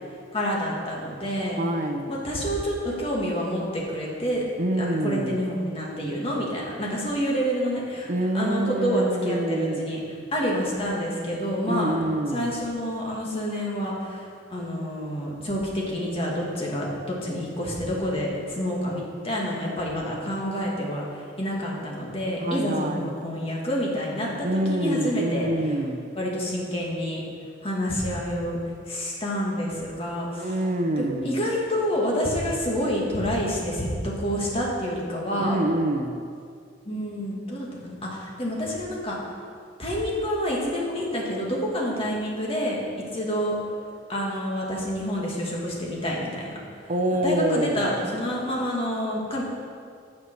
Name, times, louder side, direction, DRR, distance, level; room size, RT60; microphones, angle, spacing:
voice 1, 0.3-1.6 2.1-4.4 4.8-10.0 10.3-12.0 12.3-21.0 21.4-25.5 26.1-27.2 27.6-28.6 28.9-30.5 31.0-35.6 36.9-39.2 39.8-42.8 43.1-43.5 44.1-46.5 47.1-49.4, equal, 30° left, -3 dB, 2.0 m, -28 dB
voice 2, 1.6-2.1 4.6-5.4 8.1-9.8 11.7-12.5 22.4-23.1 24.4-26.1 30.4-31.4 35.4-36.2 46.9-48.0, right 1 dB, 45° right, 5 dB, 0.6 m, -26 dB
9.6 x 6.8 x 6.2 m, 2.3 s
head